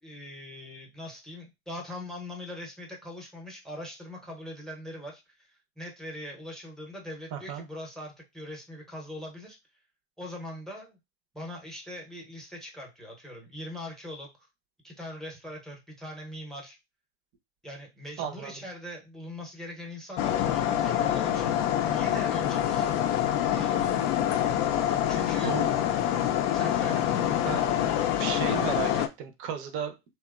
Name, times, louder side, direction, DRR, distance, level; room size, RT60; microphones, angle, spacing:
voice 1, 0.0-9.6 10.2-11.0 11.3-14.3 14.8-16.8 17.6-22.9 23.5-24.1 25.1-25.6 26.5-27.4, left 1 dB, ahead, 0 dB, 0.7 m, -41 dB
voice 2, 7.3-7.6 18.2-18.6 25.4-25.7 27.4-27.7 28.2-29.9, right 8 dB, 40° right, 6 dB, 0.6 m, -34 dB
sound 1, 20.2-29.1, left 11 dB, 45° left, 0.4 m, -26 dB
2.8 x 2.1 x 2.3 m, 0.23 s
hypercardioid pair, 115°, 33 cm